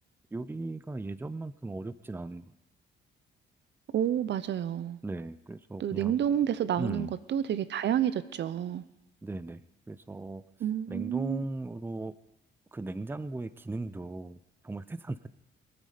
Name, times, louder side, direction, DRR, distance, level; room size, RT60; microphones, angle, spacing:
voice 1, 0.3-2.4 5.0-6.2 6.8-7.1 9.2-9.6 9.9-10.4 10.9-12.1 12.7-14.4 14.6-15.3, right 2 dB, 10° right, 0.6 m, -37 dB
voice 2, 3.9-5.0 5.8-8.8 10.6-11.4, right 10 dB, 65° right, 0.7 m, -29 dB
22.5 x 9.3 x 5.1 m
cardioid pair, 90°, 20 cm